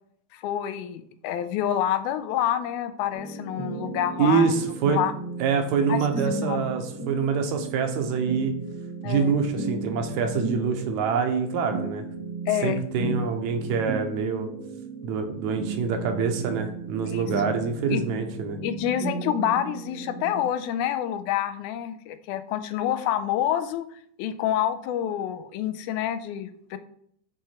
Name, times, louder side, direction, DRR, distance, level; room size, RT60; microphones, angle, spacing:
voice 1, 0.3-4.5 4.9-5.1 5.9-6.0 6.3-6.7 9.0-9.3 12.5-12.9 17.0-17.5 17.9-18.0 18.6-23.9 24.2-26.8, left 10 dB, 90° left, 10 dB, 2.0 m, -28 dB
sound 1, 3.1-20.5, right 3 dB, 40° left, 1.6 m, -35 dB
voice 2, 4.2-5.0 5.4-8.5 9.0-12.1 12.6-14.5 15.0-18.6, right 6 dB, 80° right, 6 dB, 2.0 m, -25 dB
7.7 x 3.6 x 4.3 m, 0.65 s
omnidirectional pair, 3.4 m